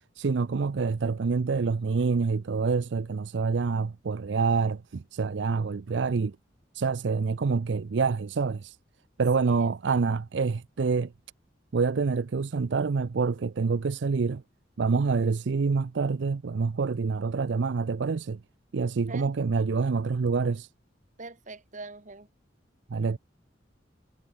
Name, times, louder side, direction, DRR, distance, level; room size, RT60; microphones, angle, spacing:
voice 1, 0.2-6.4 6.7-8.8 9.2-11.1 11.7-14.4 14.8-18.4 18.7-20.7 22.9-23.2, right 4 dB, 70° right, 0.5 m, -27 dB
voice 2, 21.2-22.3, right 3 dB, 45° right, 2.8 m, -43 dB
head